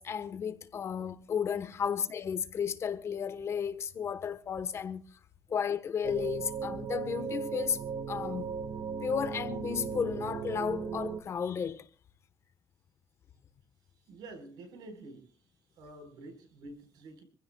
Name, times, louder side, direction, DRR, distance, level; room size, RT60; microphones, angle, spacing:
voice 1, 0.0-5.1 5.5-7.8 8.1-8.5 9.0-11.9, left 7 dB, 40° left, 1.1 m, -33 dB
sound 1, 6.0-11.2, right 6 dB, 65° right, 1.4 m, -37 dB
voice 2, 14.1-15.4 15.7-17.2, right 2 dB, 85° right, 4.5 m, -48 dB
26.0 x 15.5 x 2.3 m
cardioid pair, 130°, 7 cm